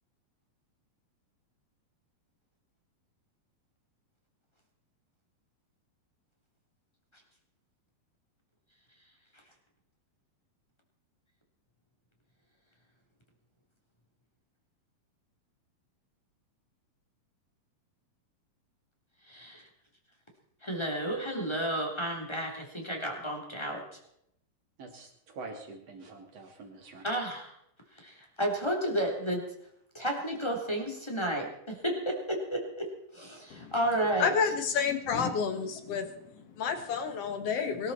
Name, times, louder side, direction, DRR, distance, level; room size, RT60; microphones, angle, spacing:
voice 1, 19.3-19.6 20.6-23.8 27.0-27.5 28.0-29.4 29.9-32.9 33.1-34.3, right 1 dB, 10° left, 1 dB, 3.0 m, -32 dB
voice 2, 24.8-27.0, right 3 dB, 45° right, 2 dB, 3.7 m, -45 dB
voice 3, 34.2-37.9, left 6 dB, 55° left, 8 dB, 2.0 m, -30 dB
23.0 x 13.5 x 4.3 m, 0.74 s
omnidirectional pair, 4.2 m